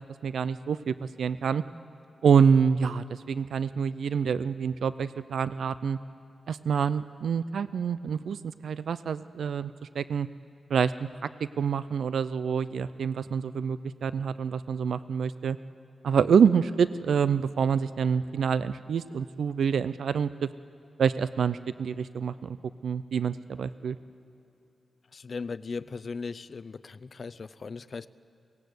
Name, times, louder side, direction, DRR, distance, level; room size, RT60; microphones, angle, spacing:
voice 1, 0.0-1.6 2.2-6.0 6.5-9.7 10.0-10.3 10.7-10.9 11.6-15.6 16.0-20.5 21.0-22.6 22.8-24.0, right 6 dB, 90° right, 15 dB, 0.4 m, -26 dB
voice 2, 25.1-28.1, left 4 dB, 45° left, 15 dB, 0.5 m, -38 dB
23.0 x 18.0 x 8.0 m, 2.9 s
wide cardioid pair, 155°, 0 cm